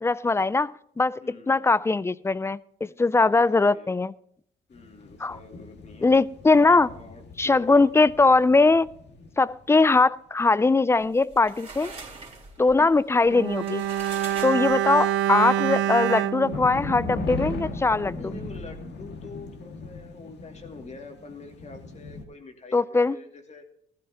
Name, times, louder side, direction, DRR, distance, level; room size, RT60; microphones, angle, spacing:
voice 1, 0.0-4.1 5.2-5.4 6.0-6.9 7.4-8.9 9.4-11.9 12.6-13.8 14.4-18.3 22.7-23.2, left 3 dB, 15° left, 20 dB, 0.4 m, -21 dB
voice 2, 1.2-1.6 2.8-4.0 4.7-6.1 6.7-7.9 12.6-13.5 18.1-23.7, left 3 dB, 35° left, 4 dB, 2.4 m, -45 dB
sound 1, 4.7-9.9 14.9-22.2, left 3 dB, 60° left, 2.1 m, -38 dB
sound 2, 11.0-15.2, right 3 dB, 30° right, 3.5 m, -42 dB
Bowed string instrument, 13.3-17.7 18.0-18.2, right 11 dB, 75° right, 0.5 m, -27 dB
15.0 x 13.5 x 2.9 m, 0.68 s
cardioid pair, 100°, 20 cm